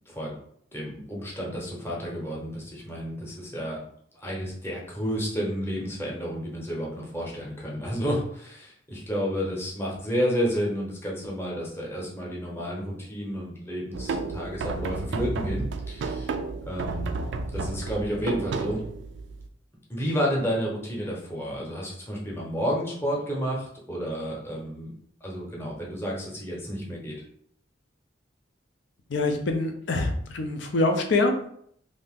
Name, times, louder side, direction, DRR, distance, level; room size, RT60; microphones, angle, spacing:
voice 1, 0.7-3.8 4.1-16.3 16.7-17.1 17.5-18.8 19.9-24.9 25.2-27.1, equal, 10° left, -3 dB, 0.8 m, -31 dB
sound 1, 13.9-19.5, right 3 dB, 70° right, 0.3 m, -32 dB
voice 2, 29.1-31.4, left 2 dB, 70° left, 5 dB, 0.6 m, -25 dB
2.8 x 2.6 x 3.6 m, 0.66 s
head